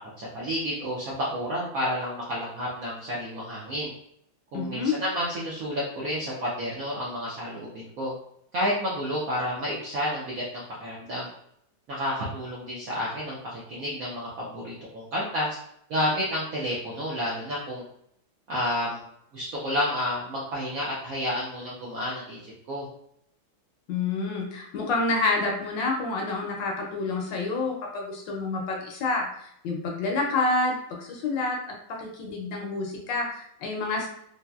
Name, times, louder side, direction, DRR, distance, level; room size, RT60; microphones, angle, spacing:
voice 1, 0.2-3.9 4.5-8.1 8.5-11.3 11.9-15.6 15.9-17.8 18.5-19.0 19.3-22.9, equal, 75° right, -5 dB, 0.8 m, -30 dB
voice 2, 4.5-4.9 23.9-31.6 32.0-34.1, left 3 dB, 70° left, 0 dB, 1.2 m, -28 dB
4.0 x 2.1 x 2.3 m, 0.72 s
omnidirectional pair, 2.2 m